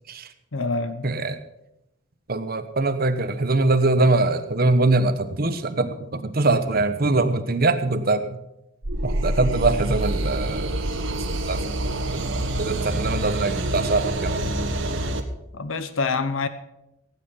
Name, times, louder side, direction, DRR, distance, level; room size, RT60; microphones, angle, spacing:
voice 1, 0.5-1.3 15.5-16.5, left 4 dB, 90° left, 1.0 m, -26 dB
voice 2, 1.0-1.4 2.3-8.3 9.0-10.7 11.5-11.6 12.1-12.2 12.6-14.4, right 2 dB, 50° right, 1.1 m, -22 dB
sound 1, 8.8-15.2, right 1 dB, 85° right, 1.5 m, -26 dB
16.5 x 9.0 x 5.8 m
head